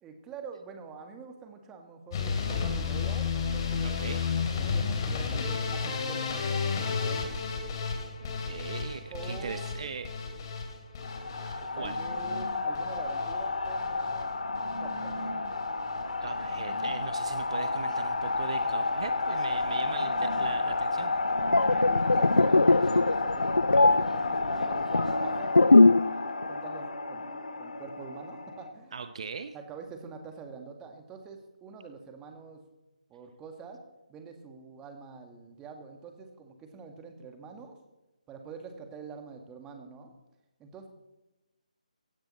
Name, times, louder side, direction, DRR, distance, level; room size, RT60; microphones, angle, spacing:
voice 1, 0.0-4.0 4.7-7.4 9.1-9.9 11.7-14.3 14.8-15.1 21.9-29.0 29.5-32.6 33.1-33.8 34.1-37.8 38.3-40.1 40.6-40.9, right 5 dB, 15° right, 5 dB, 1.8 m, -46 dB
sound 1, 2.1-14.2 14.5-15.1 15.4-16.0 16.4-16.6 16.9-17.0 17.3-17.4, left 5 dB, 35° left, 3.1 m, -33 dB
voice 2, 3.8-4.2 8.2-10.1 11.6-12.0 16.2-21.1 28.9-29.5, right 5 dB, 50° right, 10 dB, 0.9 m, -39 dB
sound 2, 11.0-28.7, left 3 dB, 70° left, 2.4 m, -31 dB
sound 3, 21.3-26.2 26.4-26.7, left 2 dB, 85° left, 0.4 m, -21 dB
16.5 x 16.0 x 4.2 m, 1.0 s
figure-of-eight pair, 150°, 4 cm